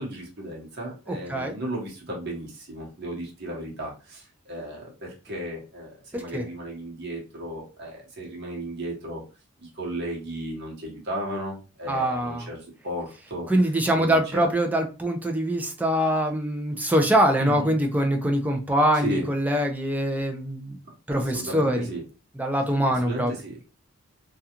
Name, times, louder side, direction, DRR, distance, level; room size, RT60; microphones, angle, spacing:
voice 1, 0.0-9.2 9.6-13.5 13.9-14.5 17.4-17.7 18.9-19.3 21.1-22.0 22.9-23.6, right 1 dB, 55° right, -2 dB, 1.0 m, -35 dB
voice 2, 1.1-1.5 6.1-6.4 11.9-12.5 13.5-20.8 21.1-21.9 22.4-23.3, right 1 dB, 10° right, 3 dB, 0.4 m, -24 dB
2.4 x 2.3 x 2.8 m, 0.32 s
head